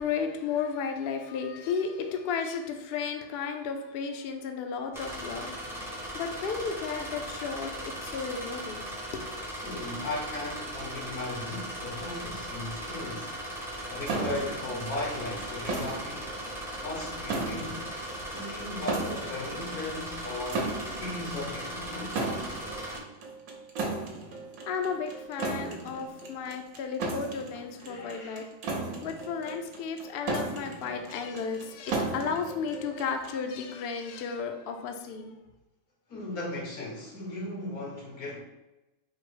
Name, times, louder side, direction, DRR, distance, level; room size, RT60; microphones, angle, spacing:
voice 1, 0.0-5.5 6.1-8.8 9.1-9.3 24.6-28.5 28.8-35.4, left 6 dB, 65° left, 5 dB, 0.6 m, -33 dB
sound 1, 4.9-23.0, right 1 dB, 5° right, 0.5 m, -38 dB
voice 2, 9.6-13.4 13.9-16.3 16.8-18.0 18.3-20.7 21.0-22.2 27.8-28.5 36.1-38.4, left 2 dB, 90° left, -3 dB, 1.7 m, -37 dB
sound 2, 14.1-33.4, right 3 dB, 75° right, 1.2 m, -36 dB
4.6 x 2.0 x 4.6 m, 1.0 s
omnidirectional pair, 1.5 m